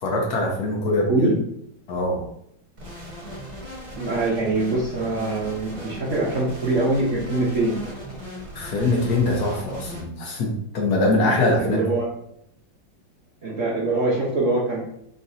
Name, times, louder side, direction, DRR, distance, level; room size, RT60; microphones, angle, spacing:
voice 1, 0.0-1.3 1.9-2.2 8.5-11.8, left 2 dB, 60° left, 0 dB, 1.3 m, -23 dB
voice 2, 0.9-1.3 4.0-7.8 11.6-12.0 13.4-14.8, right 2 dB, 60° right, -4 dB, 0.9 m, -23 dB
sound 1, 2.8-10.0, equal, 40° right, 1.4 m, -38 dB
4.4 x 3.9 x 2.6 m, 0.72 s
omnidirectional pair, 2.1 m